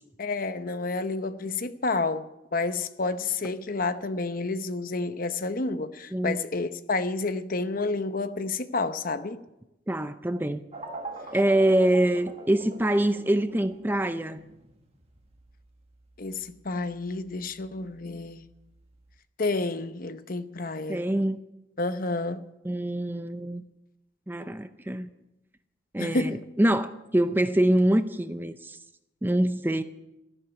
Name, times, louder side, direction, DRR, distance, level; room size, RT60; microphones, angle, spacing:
voice 1, 0.2-9.4 16.2-18.4 19.4-21.0 21.8-22.4 26.0-26.4, left 3 dB, 45° left, 0.8 m, -30 dB
voice 2, 9.9-10.6 11.3-14.4 20.9-21.4 22.6-23.6 24.3-25.1 25.9-28.8 29.2-29.8, right 1 dB, 10° right, 0.5 m, -25 dB
sound 1, 10.7-19.2, right 2 dB, 30° right, 1.6 m, -43 dB
13.5 x 11.5 x 8.2 m
head